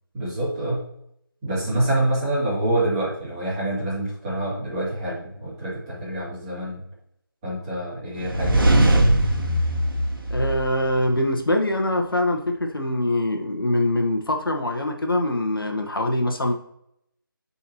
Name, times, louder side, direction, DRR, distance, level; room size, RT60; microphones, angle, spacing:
voice 1, 0.1-0.8 1.4-6.8 7.4-8.7, right 1 dB, 15° right, -8 dB, 2.5 m, -26 dB
sound 1, 8.2-11.1, right 1 dB, 65° right, 1.5 m, -20 dB
voice 2, 10.3-16.5, left 1 dB, 70° left, 3 dB, 1.1 m, -23 dB
9.8 x 4.2 x 2.8 m, 0.75 s
figure-of-eight pair, 160°, 12 cm